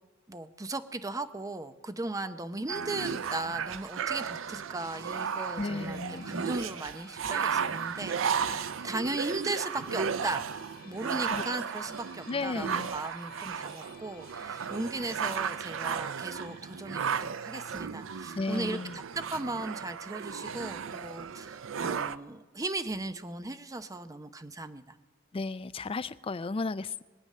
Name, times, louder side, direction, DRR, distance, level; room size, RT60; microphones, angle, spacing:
voice 1, 0.3-10.5 10.8-18.8 19.1-25.0, right 2 dB, 15° right, 10 dB, 0.6 m, -37 dB
sound 1, 2.7-22.1, right 6 dB, 75° right, 0.5 m, -35 dB
Musical instrument, 4.7-19.9, left 5 dB, 50° left, 1.5 m, -58 dB
voice 2, 5.6-6.3 11.3-11.4 12.3-12.9 18.4-19.0 25.3-27.0, left 3 dB, 30° left, 15 dB, 0.4 m, -34 dB
23.0 x 8.8 x 6.6 m, 1.3 s
head